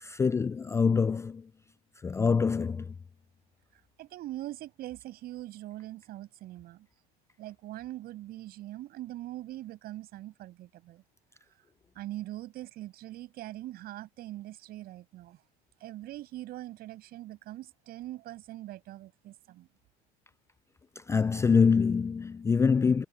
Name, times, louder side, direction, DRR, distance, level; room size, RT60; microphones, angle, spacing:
voice 1, 0.0-1.4 2.0-2.9 21.1-23.0, left 5 dB, 15° left, 0.4 m, -25 dB
voice 2, 4.0-6.9 7.4-11.0 11.9-15.4 15.8-19.7, right 15 dB, 55° right, 6.7 m, -42 dB
supercardioid pair, 105°, 19 cm